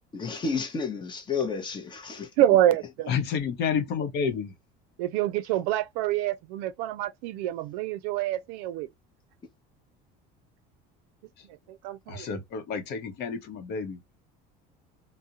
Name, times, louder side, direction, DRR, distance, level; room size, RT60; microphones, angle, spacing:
voice 1, 0.1-2.3, left 5 dB, 25° left, 0.7 m, -31 dB
voice 2, 2.4-3.1 5.0-8.9 11.7-12.3, right 13 dB, 90° right, 0.4 m, -26 dB
voice 3, 3.1-4.5 12.1-14.0, left 6 dB, 55° left, 0.7 m, -30 dB
2.4 x 2.0 x 2.7 m
cardioid pair, 135°, 20 cm